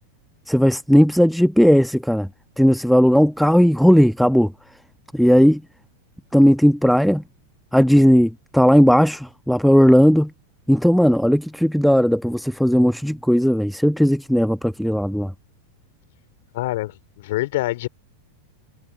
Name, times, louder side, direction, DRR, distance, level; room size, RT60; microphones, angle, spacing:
voice 1, 0.5-2.3 2.6-4.5 5.1-5.6 6.3-7.2 7.7-10.3 10.7-15.3, equal, ahead, 1.3 m, -16 dB
voice 2, 16.5-17.9, left 17 dB, 55° left, 4.0 m, -26 dB
figure-of-eight pair, 90°, 0 cm